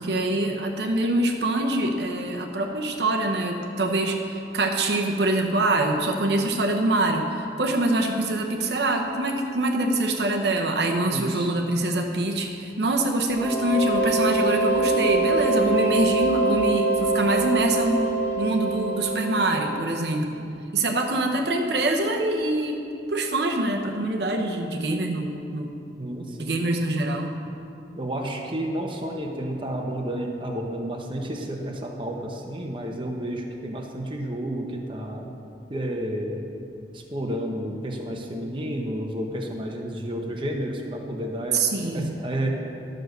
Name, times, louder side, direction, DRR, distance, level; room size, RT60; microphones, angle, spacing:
voice 1, 0.0-20.4 20.7-22.8 23.1-25.7 26.4-27.3 41.5-42.2, right 2 dB, 70° right, 2 dB, 0.9 m, -24 dB
voice 2, 11.1-11.5 26.0-26.6 27.9-35.3 35.7-36.5 36.9-41.6 41.9-42.5, right 1 dB, 30° right, 1 dB, 1.0 m, -31 dB
sound 1, 13.3-19.9, right 2 dB, 10° left, 1.4 m, -24 dB
11.5 x 6.5 x 6.6 m, 2.5 s
head